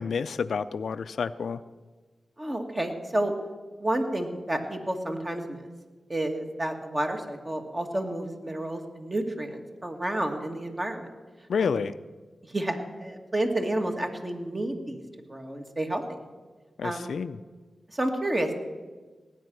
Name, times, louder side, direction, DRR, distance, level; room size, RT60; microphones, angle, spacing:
voice 1, 0.0-1.6 11.5-12.0 16.8-17.4, left 6 dB, 80° left, 14 dB, 0.4 m, -29 dB
voice 2, 2.4-3.3 3.8-5.6 6.1-11.1 11.6-11.8 12.4-15.0 15.3-16.0 16.8-17.1 17.9-18.5, right 1 dB, 30° right, 3 dB, 2.2 m, -30 dB
18.0 x 9.1 x 6.4 m, 1.3 s
cardioid pair, 50°, 0 cm